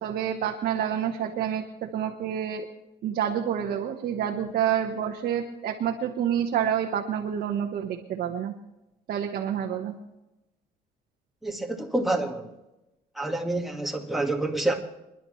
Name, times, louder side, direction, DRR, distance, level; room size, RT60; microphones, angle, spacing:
voice 1, 0.0-2.7 3.0-8.5 9.1-9.9, right 9 dB, 65° right, 1 dB, 1.2 m, -28 dB
voice 2, 11.4-12.5 13.2-14.7, right 2 dB, ahead, 1 dB, 1.8 m, -28 dB
28.0 x 11.0 x 3.2 m, 0.97 s
cardioid pair, 110°, 17 cm